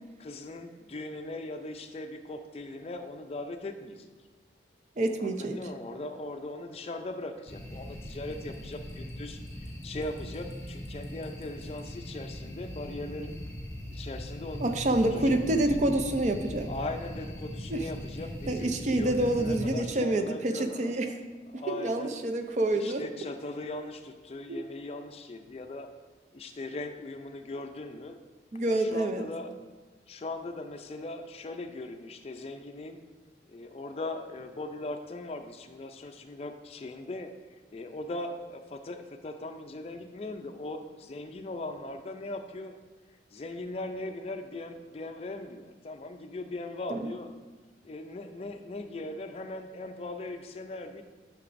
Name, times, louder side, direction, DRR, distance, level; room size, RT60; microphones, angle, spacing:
voice 1, 0.2-4.1 5.2-9.4 9.8-13.4 13.9-14.6 15.1-15.7 16.7-20.9 21.5-22.1 22.7-25.9 26.3-28.2 28.7-29.5 30.1-33.0 33.5-42.7 43.3-47.3 47.8-51.0, left 2 dB, 35° left, 7 dB, 0.4 m, -39 dB
voice 2, 5.0-5.6 14.6-16.7 17.7-17.9 18.5-21.1 21.5-23.0 24.5-24.6 28.5-29.2 46.9-47.1, right 1 dB, 40° right, 6 dB, 0.4 m, -27 dB
sound 1, 7.5-19.7, equal, 15° left, 1.0 m, -40 dB
9.8 x 5.9 x 2.6 m, 1.3 s
head